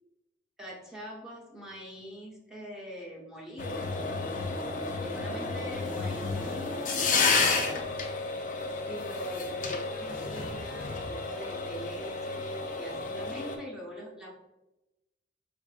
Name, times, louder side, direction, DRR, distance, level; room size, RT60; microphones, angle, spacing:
voice 1, 0.6-3.9 5.0-7.9 8.9-14.5, equal, 5° right, -4 dB, 0.8 m, -43 dB
sound 1, 3.6-13.6, left 4 dB, 45° left, 0.5 m, -31 dB
4.7 x 2.5 x 2.4 m, 0.97 s
head